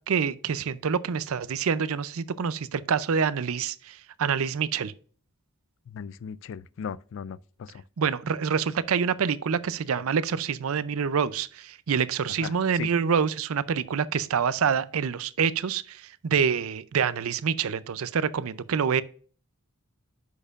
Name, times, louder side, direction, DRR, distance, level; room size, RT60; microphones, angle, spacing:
voice 1, 0.1-4.9 8.0-19.0, right 6 dB, 65° right, 0.5 m, -26 dB
voice 2, 5.9-7.8 12.4-12.9, left 7 dB, 55° left, 0.3 m, -38 dB
10.0 x 6.5 x 2.4 m
head